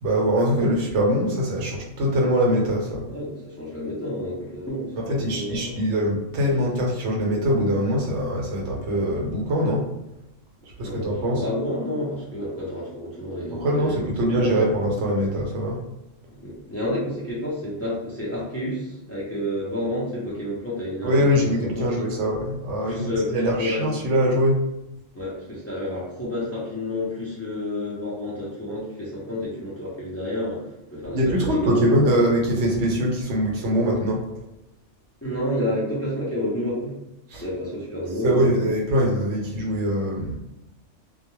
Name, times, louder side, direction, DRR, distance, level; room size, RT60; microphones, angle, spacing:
voice 1, 0.0-3.0 5.2-9.8 10.8-11.4 13.6-15.8 21.0-24.6 31.1-34.2 37.3-37.4 38.2-40.4, equal, 70° right, -2 dB, 0.9 m, -22 dB
voice 2, 3.1-5.8 10.8-14.0 14.3-14.7 16.3-22.2 22.8-23.8 25.1-32.1 35.2-37.0 37.4-38.7, left 1 dB, 20° left, -7 dB, 0.4 m, -30 dB
2.2 x 2.2 x 3.0 m, 0.89 s
omnidirectional pair, 1.3 m